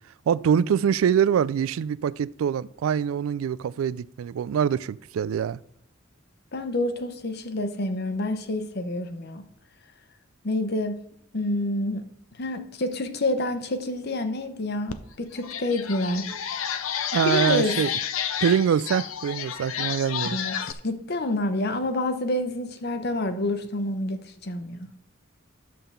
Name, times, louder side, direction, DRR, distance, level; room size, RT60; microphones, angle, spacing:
voice 1, 0.3-5.6 17.1-17.9 18.4-20.4, right 8 dB, 85° right, 0.3 m, -24 dB
voice 2, 6.5-9.4 10.4-11.0 11.3-12.1 12.4-16.3 17.2-17.8 20.3-20.6 20.8-24.9, left 1 dB, 55° left, 0.9 m, -28 dB
sound 1, 14.9-15.0 15.4-20.7, left 8 dB, 85° left, 0.6 m, -30 dB
11.0 x 3.8 x 6.8 m
head